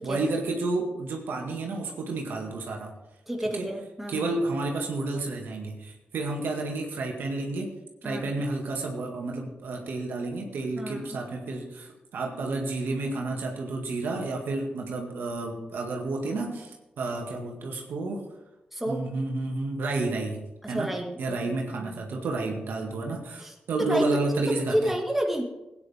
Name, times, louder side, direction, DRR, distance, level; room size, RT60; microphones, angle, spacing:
voice 1, 0.0-2.9 3.5-3.7 4.1-7.7 8.0-18.2 18.9-20.4 20.7-20.9 21.2-24.8, right 2 dB, 80° right, 1 dB, 2.0 m, -31 dB
voice 2, 3.3-4.4 8.0-8.4 10.8-11.2 18.7-19.1 20.6-21.4 21.8-22.0 23.4-24.2 24.5-25.4, right 1 dB, 5° right, 0 dB, 2.1 m, -30 dB
16.0 x 9.5 x 3.6 m, 1.0 s
cardioid pair, 60°, 3 cm